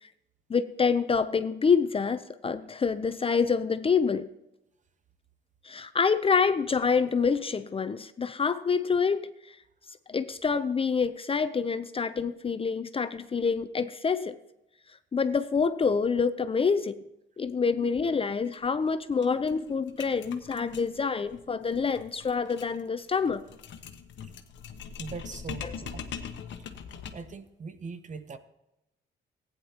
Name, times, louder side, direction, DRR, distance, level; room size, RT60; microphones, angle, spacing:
voice 1, 0.5-4.3 5.6-9.2 9.5-9.6 10.1-14.4 15.1-17.0 17.4-23.4, left 5 dB, 30° left, 12 dB, 0.5 m, -27 dB
sound 1, 18.5-18.6 18.9-19.0 19.2-27.4, left 7 dB, 70° left, 1.0 m, -42 dB
voice 2, 25.0-26.1 27.1-28.4, right 5 dB, 40° right, 11 dB, 0.9 m, -41 dB
15.0 x 9.5 x 2.9 m, 0.88 s
cardioid pair, 90°, 20 cm